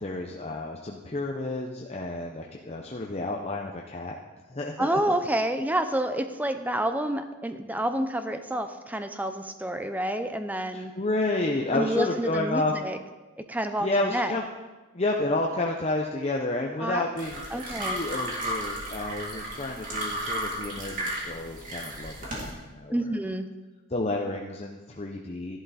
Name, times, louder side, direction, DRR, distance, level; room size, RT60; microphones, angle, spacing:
voice 1, 0.0-4.2 4.5-5.2 10.7-12.7 13.8-14.4 14.9-23.0 23.9-25.6, left 2 dB, 30° left, 0 dB, 0.7 m, -30 dB
voice 2, 4.8-10.9 11.7-13.0 13.5-14.4 16.8-17.0 17.5-18.0 22.9-23.5, right 1 dB, 10° right, 8 dB, 0.6 m, -28 dB
sound 1, 17.2-22.5, right 1 dB, 40° right, 3.2 m, -34 dB
13.5 x 11.5 x 4.2 m, 1.2 s
head